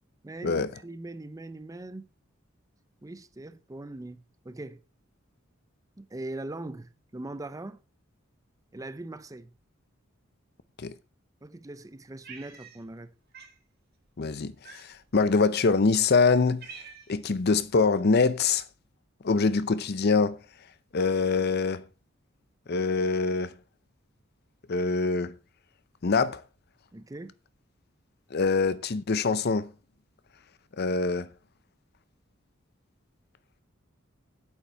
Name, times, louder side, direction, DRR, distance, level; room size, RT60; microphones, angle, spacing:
voice 1, 0.2-2.0 3.0-4.8 6.0-7.8 8.7-9.5 11.4-13.1 26.9-27.3, right 2 dB, 15° right, 0.5 m, -41 dB
Cat, 12.2-13.0 13.3-13.6 14.6-15.2 15.9-16.0 16.3-17.3, right 6 dB, 50° right, 2.1 m, -47 dB
voice 2, 14.2-16.7 17.1-18.6 19.2-20.4 20.9-21.8 22.7-23.5 24.7-25.3 26.0-26.4 28.3-29.7 30.8-31.3, left 4 dB, 55° left, 0.6 m, -24 dB
8.3 x 8.2 x 4.5 m
head